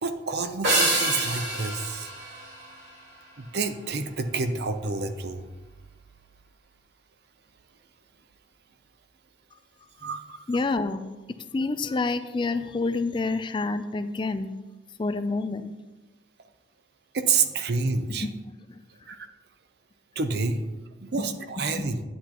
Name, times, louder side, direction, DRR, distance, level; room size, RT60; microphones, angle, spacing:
voice 1, 0.0-2.1 3.4-5.4 10.0-10.4 17.1-18.3 19.1-19.3 20.2-20.6 21.0-22.0, right 4 dB, 60° right, 8 dB, 0.6 m, -28 dB
sound 1, 0.6-3.3, right 1 dB, 90° right, 2.6 m, -27 dB
voice 2, 10.5-11.1 11.5-14.5 15.0-15.7 17.9-18.3 21.1-21.2 21.7-21.9, left 3 dB, 25° left, 10 dB, 0.3 m, -28 dB
10.0 x 8.2 x 3.0 m, 1.2 s
head